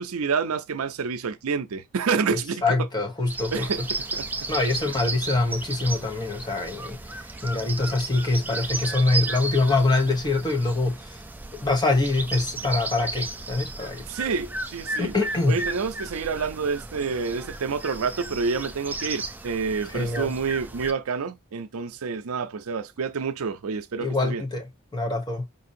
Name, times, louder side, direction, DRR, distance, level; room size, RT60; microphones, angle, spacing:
voice 1, 0.1-2.6 3.5-3.8 4.1-4.3 14.1-15.1 15.5-24.4, right 5 dB, 75° right, 0.5 m, -28 dB
voice 2, 2.3-3.7 4.5-11.2 11.6-14.0 15.0-15.6 19.9-20.3 24.0-25.5, left 2 dB, 20° left, 0.9 m, -24 dB
sound 1, 3.3-20.9, right 3 dB, 10° right, 0.3 m, -34 dB
5.2 x 2.6 x 2.6 m
head